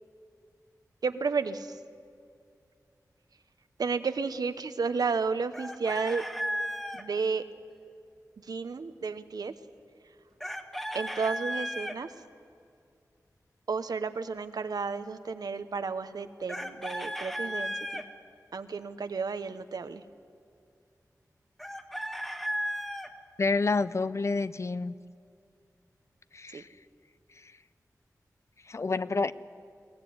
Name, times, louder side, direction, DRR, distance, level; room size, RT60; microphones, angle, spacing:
voice 1, 1.0-1.8 3.8-6.2 6.9-7.4 8.4-9.5 10.9-12.1 13.7-18.0 18.5-20.0 26.5-26.6, right 5 dB, 85° right, 10 dB, 1.0 m, -32 dB
Chicken rooster, 5.5-7.0 10.4-12.0 16.5-18.0 21.6-23.1, equal, 5° left, 1.4 m, -34 dB
voice 2, 23.4-24.9 26.3-26.7 28.7-29.3, left 3 dB, 50° left, 15 dB, 0.6 m, -28 dB
22.0 x 17.5 x 9.5 m, 2.4 s
wide cardioid pair, 95°, 6 cm